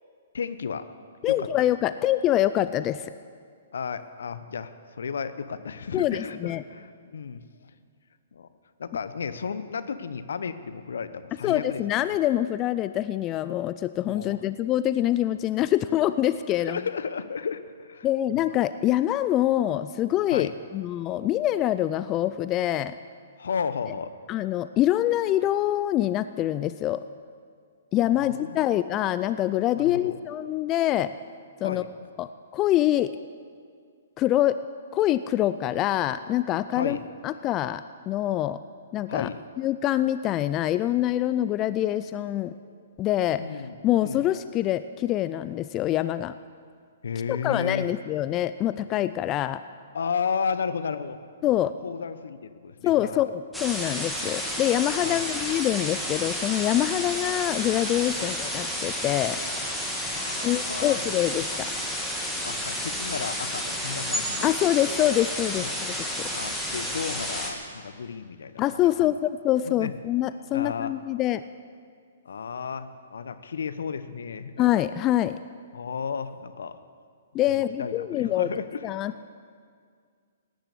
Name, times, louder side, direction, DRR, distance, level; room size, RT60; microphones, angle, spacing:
voice 1, 0.3-0.8 1.3-1.5 3.7-7.4 8.3-8.5 8.8-11.8 14.0-14.4 16.6-18.4 20.3-20.5 23.4-24.1 28.0-28.7 29.7-30.2 31.6-31.9 36.7-37.0 39.1-39.4 43.4-43.8 44.0-44.3 47.0-47.9 49.9-51.2 51.8-53.3 55.0-55.3 58.2-58.3 60.0-61.0 62.4-64.6 65.6-65.7 66.3-69.1 69.6-69.9 70.5-70.9 72.2-74.7 75.7-76.8 77.4-78.8, left 6 dB, 70° left, 12 dB, 0.9 m, -33 dB
voice 2, 1.2-3.1 5.9-6.6 11.4-16.8 18.0-23.0 24.3-27.0 27.9-31.1 31.6-31.8 32.2-33.1 34.2-34.6 34.9-37.0 37.2-38.6 38.9-39.3 39.6-42.5 43.0-43.4 43.8-46.3 47.3-49.6 51.4-51.7 52.8-59.4 60.4-61.7 64.4-66.3 68.6-71.4 74.6-75.4 77.3-78.5 78.8-79.1, left 13 dB, 30° left, 13 dB, 0.4 m, -25 dB
sound 1, 53.5-67.5, equal, ahead, 2.3 m, -31 dB
16.5 x 10.5 x 8.4 m, 2.1 s
hypercardioid pair, 125°, 0 cm